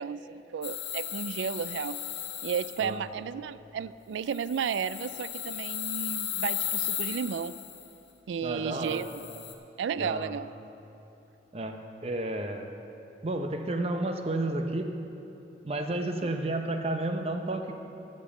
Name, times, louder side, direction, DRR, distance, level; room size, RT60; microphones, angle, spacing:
voice 1, 0.0-2.0 2.4-7.5 8.3-9.3 9.8-10.5, right 7 dB, 80° right, 16 dB, 0.3 m, -33 dB
sound 1, 0.6-2.8 4.3-7.8 8.9-9.5, left 10 dB, 75° left, 1.0 m, -35 dB
voice 2, 8.4-9.1 10.0-10.3 11.5-12.7 13.2-14.9 15.6-17.7, right 2 dB, 35° right, 5 dB, 0.7 m, -31 dB
13.5 x 5.4 x 7.1 m, 2.9 s
head